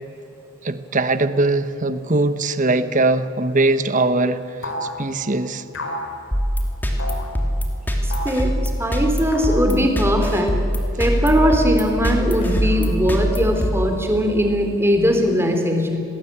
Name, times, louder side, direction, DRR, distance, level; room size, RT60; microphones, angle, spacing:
voice 1, 0.6-5.6, right 2 dB, 40° right, 11 dB, 1.2 m, -21 dB
sound 1, 4.6-5.0 5.7-6.1 7.0-7.3 8.1-8.4 9.3-9.6 11.0-11.6 12.4-13.1, left 1 dB, 65° left, 4.4 m, -32 dB
sound 2, 6.3-14.5, equal, 10° left, 2.6 m, -23 dB
voice 2, 8.0-8.5 8.8-10.6 11.0-16.0, equal, 10° right, 4 dB, 3.4 m, -20 dB
27.5 x 19.5 x 8.8 m, 2.9 s
head